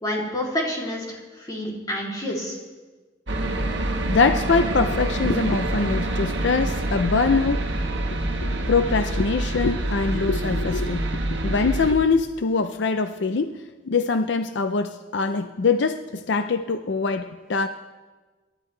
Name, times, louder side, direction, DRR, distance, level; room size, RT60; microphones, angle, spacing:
voice 1, 0.0-2.6, left 1 dB, 20° left, -3 dB, 3.1 m, -28 dB
sound 1, 3.3-11.9, right 1 dB, 70° right, 1.4 m, -26 dB
voice 2, 4.1-7.7 8.6-11.1 11.4-13.5 13.9-16.0 16.3-17.7, left 4 dB, 70° left, 8 dB, 0.6 m, -23 dB
25.5 x 12.0 x 3.3 m, 1.3 s
head